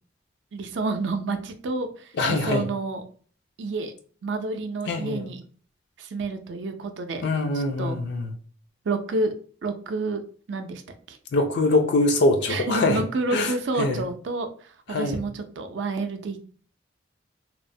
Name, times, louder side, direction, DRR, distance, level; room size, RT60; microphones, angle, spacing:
voice 1, 0.5-3.0 3.6-3.9 4.2-5.4 6.0-7.2 7.5-8.0 8.9-9.3 9.6-10.2 10.5-10.8 11.1-11.2 12.5-16.4, right 3 dB, 70° right, 0.4 m, -29 dB
voice 2, 2.2-2.6 4.9-5.3 7.2-8.3 11.3-13.0 13.3-14.1 14.9-15.2, left 2 dB, 60° left, 0.4 m, -23 dB
2.9 x 2.0 x 2.6 m
head